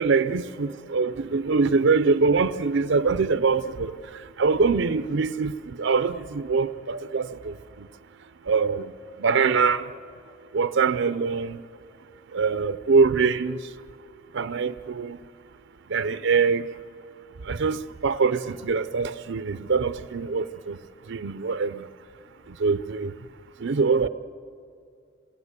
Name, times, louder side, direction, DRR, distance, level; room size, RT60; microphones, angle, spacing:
voice 1, 0.0-3.9 4.4-5.5 5.8-7.3 8.5-8.9 9.2-9.8 10.5-11.6 12.3-13.6 14.3-15.2 15.9-16.7 17.5-20.8 21.1-21.8 22.6-23.1 23.6-24.1, right 4 dB, 65° right, 0.6 m, -23 dB
27.5 x 19.0 x 8.2 m
head